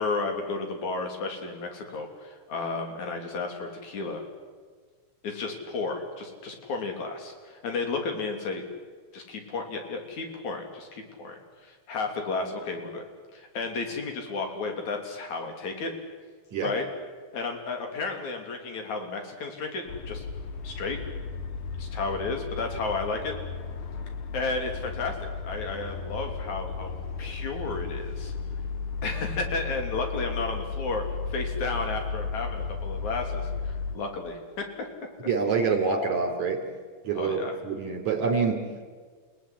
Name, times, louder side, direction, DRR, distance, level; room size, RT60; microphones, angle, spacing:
voice 1, 0.0-4.2 5.2-8.6 9.1-13.0 13.3-15.9 16.6-16.8 17.3-20.2 20.6-21.0 21.8-23.3 24.3-25.2 25.4-28.3 29.0-31.0 31.3-34.7 37.2-37.6, left 3 dB, 70° left, 4 dB, 4.5 m, -33 dB
sound 1, 19.9-34.0, left 5 dB, 90° left, 3.0 m, -34 dB
voice 2, 35.3-36.7 37.0-38.6, right 5 dB, 70° right, 4 dB, 5.1 m, -26 dB
29.5 x 18.0 x 10.0 m, 1.5 s
omnidirectional pair, 3.4 m